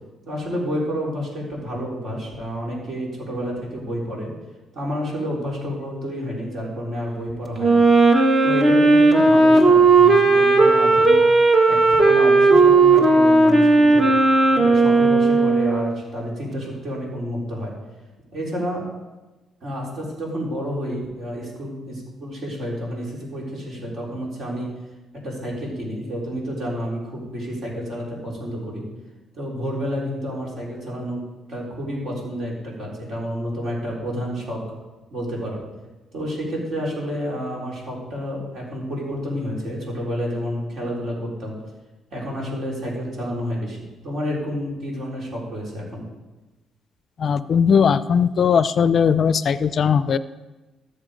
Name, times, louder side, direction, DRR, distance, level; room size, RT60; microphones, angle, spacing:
voice 1, 0.2-4.3 4.7-7.8 8.4-11.3 11.6-14.1 14.5-17.7 18.3-18.9 19.6-24.7 25.1-28.8 29.3-31.2 31.5-34.6 35.1-35.6 36.1-41.6 42.1-43.8 44.0-46.0, equal, 60° right, -3 dB, 4.2 m, -29 dB
Wind instrument woodwind instrument, 7.6-16.0, right 3 dB, 35° right, 1.5 m, -15 dB
voice 2, 47.2-50.2, left 7 dB, 55° left, 15 dB, 0.4 m, -18 dB
14.0 x 6.8 x 5.1 m, 1.1 s
cardioid pair, 90°, 0 cm